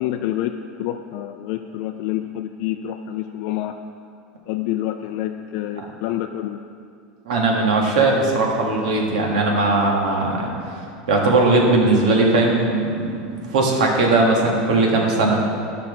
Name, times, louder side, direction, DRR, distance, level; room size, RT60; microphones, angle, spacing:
voice 1, 0.0-3.8 4.5-6.6, left 12 dB, 55° left, 5 dB, 0.3 m, -27 dB
voice 2, 7.2-10.5 11.1-13.1 13.5-15.4, right 2 dB, 90° right, -1 dB, 1.6 m, -18 dB
12.0 x 5.8 x 3.6 m, 2.4 s
supercardioid pair, 155°, 4 cm